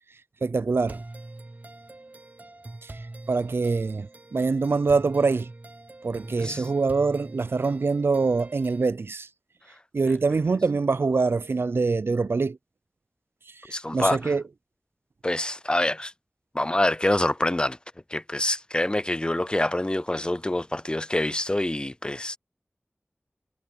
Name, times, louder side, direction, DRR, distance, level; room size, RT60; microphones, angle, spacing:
voice 1, 0.4-1.0 2.8-2.9 3.3-5.5 6.0-9.3 9.9-12.6 13.6-14.4, right 4 dB, 90° right, 0.4 m, -24 dB
sound 1, 0.9-8.9, right 2 dB, 45° right, 1.0 m, -43 dB
voice 2, 13.7-14.3 15.2-16.1 16.5-17.8 18.1-22.4, left 1 dB, 25° left, 0.6 m, -26 dB
wide cardioid pair, 50°, 4 cm